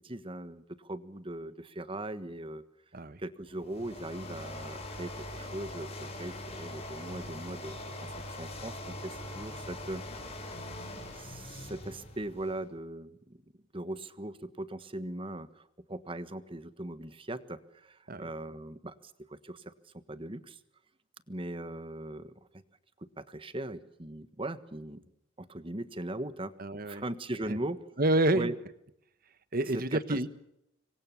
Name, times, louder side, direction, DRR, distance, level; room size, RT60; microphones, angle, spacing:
voice 1, 0.0-2.6 3.2-7.8 8.3-10.0 11.1-13.4 13.7-20.6 21.3-22.6 23.0-25.0 25.4-27.8 28.3-28.6 29.7-30.2, right 1 dB, 25° right, 13 dB, 1.4 m, -40 dB
sound 1, 3.5-12.7, left 1 dB, 30° left, 4.9 m, -42 dB
voice 2, 26.6-27.0 28.0-28.5 29.5-30.3, right 1 dB, 50° right, 13 dB, 1.3 m, -28 dB
26.5 x 23.0 x 7.1 m, 0.81 s
head